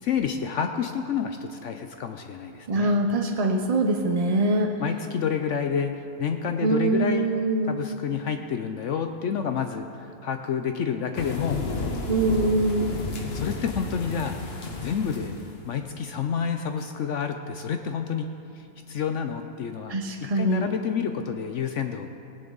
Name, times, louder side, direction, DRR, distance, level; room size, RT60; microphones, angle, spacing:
voice 1, 0.0-3.0 4.8-5.9 6.2-7.3 7.7-11.6 13.3-14.4 14.8-15.3 15.7-20.0 20.4-22.1, left 7 dB, 65° left, 6 dB, 0.8 m, -29 dB
voice 2, 2.7-4.8 6.6-7.8 12.1-13.0 19.9-20.7, right 2 dB, 50° right, 3 dB, 0.4 m, -23 dB
sound 1, 11.2-15.6, left 3 dB, 45° left, 1.3 m, -32 dB
18.5 x 10.5 x 4.0 m, 2.8 s
omnidirectional pair, 1.6 m